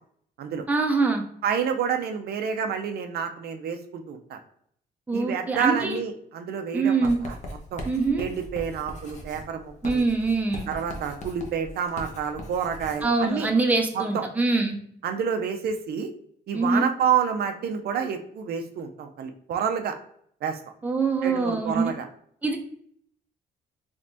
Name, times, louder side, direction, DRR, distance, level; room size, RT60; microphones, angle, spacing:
voice 1, 0.7-1.2 5.1-6.0 6.7-7.2 7.8-8.2 9.8-10.7 13.0-14.8 16.5-16.8 20.8-21.9 22.4-22.6, right 3 dB, 10° right, 2 dB, 0.5 m, -24 dB
voice 2, 1.4-4.4 5.1-7.4 7.7-7.8 8.2-10.0 10.7-13.5 13.9-14.2 15.0-16.1 16.5-20.0 20.4-20.6 21.2-22.1, right 7 dB, 70° right, 6 dB, 0.4 m, -28 dB
Writing, 7.0-13.1, equal, 45° left, 0.8 m, -39 dB
3.4 x 3.3 x 2.6 m, 0.65 s
cardioid pair, 115°, 17 cm